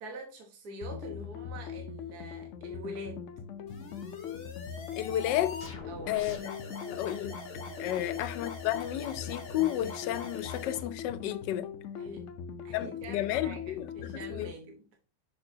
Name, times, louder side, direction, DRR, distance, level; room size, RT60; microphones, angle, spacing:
voice 1, 0.0-3.3 5.9-6.3 7.9-8.3 12.0-12.3 12.6-14.9, right 1 dB, 65° right, 1.7 m, -44 dB
sound 1, 0.8-14.5, left 8 dB, 65° left, 0.8 m, -41 dB
sound 2, 3.7-10.8, left 3 dB, 40° left, 1.1 m, -44 dB
voice 2, 5.0-5.6 6.1-6.4 6.9-7.4 7.8-11.7 12.7-14.5, left 13 dB, 85° left, 1.2 m, -32 dB
6.5 x 6.0 x 2.7 m
omnidirectional pair, 1.8 m